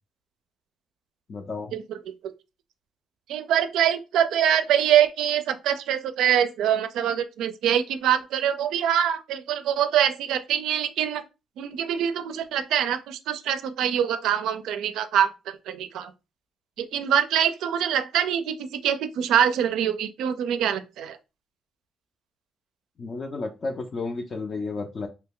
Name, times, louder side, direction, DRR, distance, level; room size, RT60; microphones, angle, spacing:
voice 1, 1.3-1.7 23.0-25.1, left 3 dB, 45° left, 0.5 m, -32 dB
voice 2, 3.3-11.2 11.6-16.1 16.8-21.2, right 9 dB, 85° right, 0.4 m, -24 dB
2.8 x 2.2 x 3.5 m
cardioid pair, 90°, 0 cm